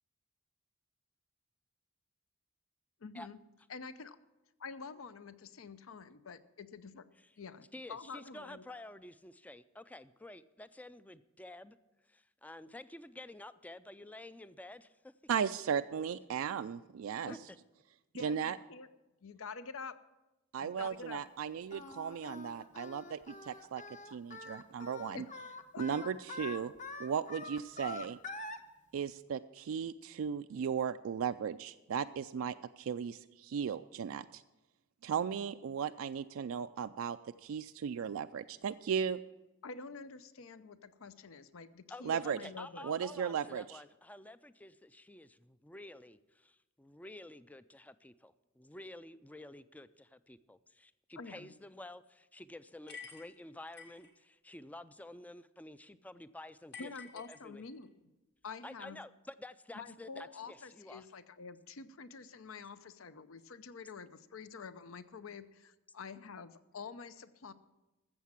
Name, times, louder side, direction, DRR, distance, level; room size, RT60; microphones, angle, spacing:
voice 1, 3.0-3.4 3.7-4.2 4.6-7.0 7.4-8.8 17.2-17.4 18.1-18.9 19.2-20.0 20.6-21.2 25.1-25.2 25.7-25.8 39.6-42.8 51.2-51.5 56.8-58.1 58.4-59.0 59.8-67.5, left 4 dB, 70° left, 14 dB, 0.6 m, -47 dB
voice 2, 7.7-11.8 12.1-15.1 17.3-17.4 41.9-56.9 57.3-57.6 58.6-61.1, left 1 dB, 5° left, 14 dB, 0.3 m, -50 dB
voice 3, 15.3-17.3 18.2-18.6 20.5-23.8 24.1-25.2 25.8-26.7 27.0-28.2 28.9-34.4 35.0-39.2 42.1-42.4 42.8-43.8, right 7 dB, 70° right, 9 dB, 0.3 m, -36 dB
Singing, 21.7-28.6, left 3 dB, 35° left, 0.9 m, -46 dB
sound 1, 52.9-54.1 56.7-57.9, left 6 dB, 55° left, 1.9 m, -50 dB
14.0 x 7.4 x 7.4 m, 1.0 s
head